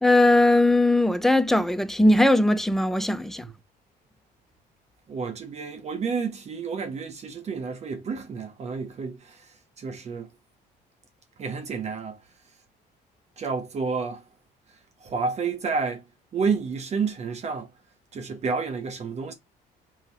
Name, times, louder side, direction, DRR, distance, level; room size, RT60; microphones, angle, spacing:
voice 1, 0.0-3.4, left 1 dB, ahead, 0.3 m, -19 dB
voice 2, 5.1-10.3 11.4-12.2 13.4-14.2 15.0-16.1 16.3-17.7 18.1-19.3, right 5 dB, 40° right, 0.8 m, -30 dB
2.9 x 2.8 x 4.0 m
cardioid pair, 110°, 17 cm